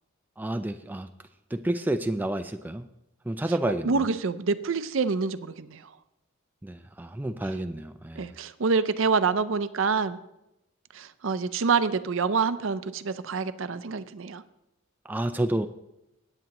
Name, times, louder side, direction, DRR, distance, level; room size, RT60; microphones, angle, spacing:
voice 1, 0.4-1.1 1.5-2.9 3.3-4.0 6.6-8.3 15.1-15.7, right 1 dB, 10° right, 8 dB, 0.3 m, -29 dB
voice 2, 3.8-5.8 7.4-7.6 8.2-10.2 10.9-14.4, right 5 dB, 65° right, 12 dB, 0.5 m, -26 dB
17.0 x 8.9 x 3.0 m, 0.89 s
head